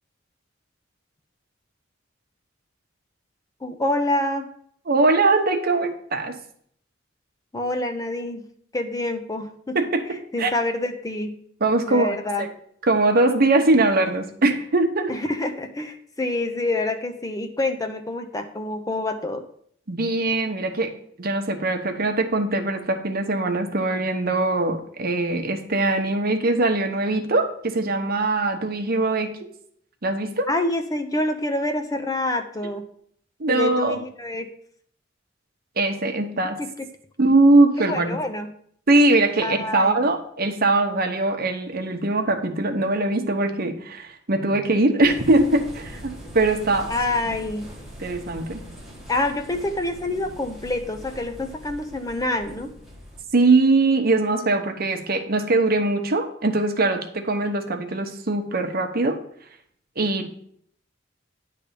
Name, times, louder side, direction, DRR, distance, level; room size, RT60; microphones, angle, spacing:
voice 1, 3.6-4.5 7.5-8.4 8.7-9.8 10.3-11.3 11.9-12.5 15.1-19.5 30.5-32.9 33.5-34.5 36.6-36.9 37.8-38.5 39.4-40.0 46.9-47.7 49.1-52.7, left 2 dB, 20° left, 7 dB, 0.6 m, -27 dB
voice 2, 4.9-6.4 9.7-10.1 10.4-10.5 11.6-12.5 12.8-15.1 19.9-20.9 21.2-29.3 30.0-30.5 33.4-34.0 35.8-36.6 37.2-38.2 38.9-46.9 47.3-47.4 48.0-48.6 53.3-59.2 60.0-60.3, right 2 dB, 50° right, 5 dB, 0.9 m, -21 dB
sound 1, 45.0-53.2, equal, ahead, 1.5 m, -41 dB
10.0 x 3.4 x 6.7 m, 0.64 s
head